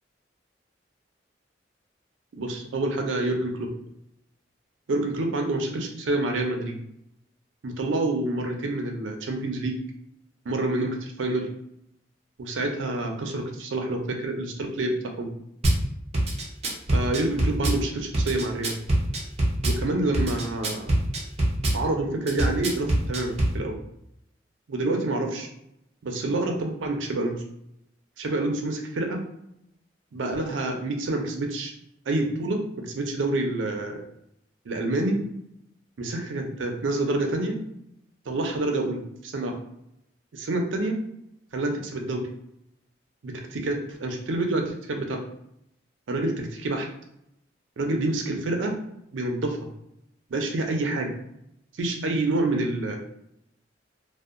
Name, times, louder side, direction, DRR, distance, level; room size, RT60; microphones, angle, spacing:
voice 1, 2.3-3.7 4.9-6.8 7.6-9.8 10.5-11.5 12.4-15.3 16.9-18.7 19.7-20.9 21.7-23.8 24.7-25.5 26.0-27.4 28.2-29.2 30.1-31.7 32.1-34.0 34.7-35.2 36.0-37.5 38.3-39.6 40.3-41.0 41.5-42.2 43.2-45.2 46.1-46.9 47.8-48.7 49.1-49.7 50.3-51.1 51.8-53.0, right 2 dB, 90° right, 3 dB, 0.5 m, -27 dB
Drum kit / Bass drum, 15.6-15.8 16.1-17.8 18.1-19.8 20.1-21.8 22.3-23.5, right 1 dB, 35° right, 0.5 m, -23 dB
2.6 x 2.1 x 2.4 m, 0.79 s
head